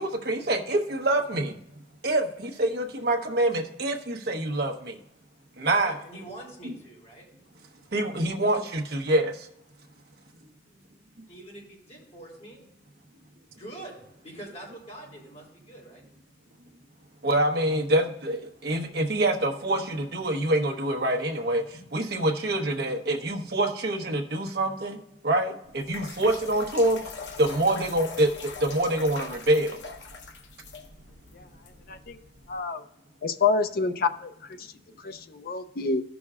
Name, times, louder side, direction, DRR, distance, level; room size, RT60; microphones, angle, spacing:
voice 1, 0.0-1.6 2.0-5.0 5.6-6.0 7.9-9.5 17.2-25.0 25.2-27.0 27.4-29.8, right 1 dB, 60° right, 3 dB, 1.1 m, -26 dB
voice 2, 5.8-7.3 11.3-12.6 13.5-16.0, right 1 dB, 40° left, -3 dB, 3.1 m, -44 dB
sound 1, 25.6-32.6, left 4 dB, 80° left, 1.0 m, -43 dB
voice 3, 32.5-32.8 33.2-34.3 34.6-34.7 35.0-36.0, left 4 dB, 55° left, 9 dB, 0.6 m, -27 dB
14.5 x 6.1 x 2.4 m, 0.79 s
head